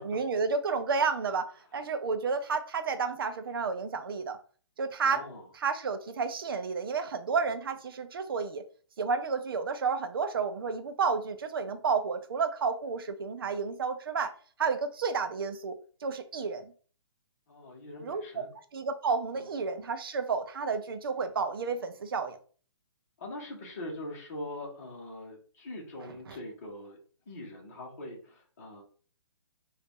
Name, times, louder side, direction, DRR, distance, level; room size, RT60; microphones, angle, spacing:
voice 1, 0.0-4.4 4.8-5.2 5.5-8.6 9.0-14.3 14.6-16.7 18.0-18.4 18.7-22.4 26.0-26.4, right 5 dB, 50° right, 0.6 m, -31 dB
voice 2, 5.0-5.4 17.5-18.5 19.4-19.5 23.2-27.0 27.3-28.8, left 1 dB, 35° left, 1.4 m, -42 dB
3.9 x 2.7 x 3.7 m
hypercardioid pair, 175°, 15 cm